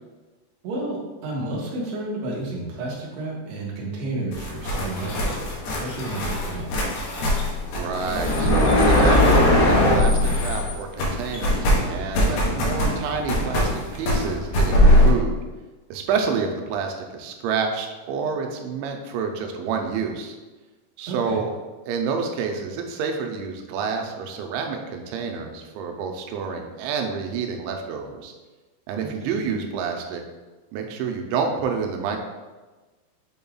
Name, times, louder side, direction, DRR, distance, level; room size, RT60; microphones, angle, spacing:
voice 1, 0.6-6.7 21.1-21.4 29.0-29.3, right 2 dB, 75° right, -4 dB, 1.6 m, -31 dB
sound 1, 4.3-10.7 11.0-15.1, left 1 dB, 70° left, 2.6 m, -20 dB
voice 2, 7.6-15.4 15.9-20.4 21.0-21.6 21.9-28.3 28.9-30.2 30.7-32.2, right 5 dB, 90° right, 3 dB, 3.0 m, -28 dB
7.4 x 5.4 x 2.3 m, 1.2 s
omnidirectional pair, 5.2 m